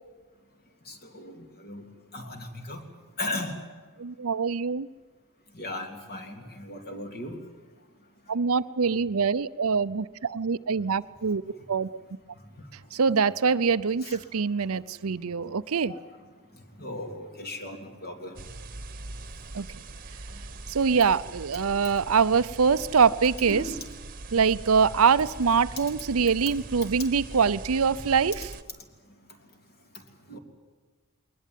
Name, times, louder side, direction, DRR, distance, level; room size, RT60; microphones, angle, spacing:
voice 1, 0.9-1.8 2.1-2.8 3.2-3.6 5.5-7.4 14.0-14.2 15.9-16.0 16.8-18.4 23.4-23.8 30.3-30.4, left 1 dB, 45° left, 4 dB, 3.3 m, -36 dB
voice 2, 4.0-4.9 8.3-11.4 11.7-11.9 12.9-15.9 19.5-19.7 20.7-23.6 24.3-28.5, right 5 dB, 70° right, 15 dB, 0.6 m, -24 dB
sound 1, 18.4-28.6, right 2 dB, 40° right, 1.2 m, -42 dB
22.0 x 20.0 x 9.3 m, 1.4 s
head